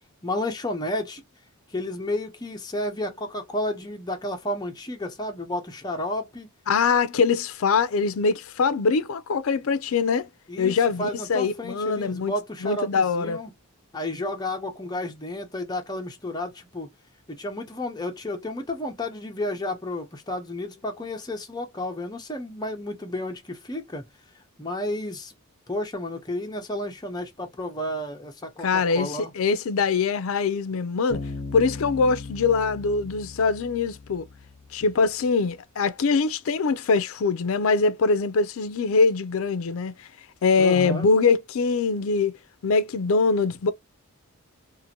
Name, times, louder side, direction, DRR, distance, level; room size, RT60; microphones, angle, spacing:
voice 1, 0.2-1.2 1.7-6.5 10.5-13.5 13.9-16.9 17.3-24.0 24.6-25.3 25.7-29.3 40.6-41.1, left 1 dB, 20° left, 0.7 m, -32 dB
voice 2, 6.7-10.3 10.6-12.3 12.6-13.4 28.6-31.2 31.5-34.3 34.7-39.9 40.4-42.4 42.6-43.7, left 4 dB, 65° left, 0.4 m, -23 dB
Bass guitar, 31.1-34.7, left 3 dB, 40° left, 1.0 m, -38 dB
2.7 x 2.5 x 2.7 m
head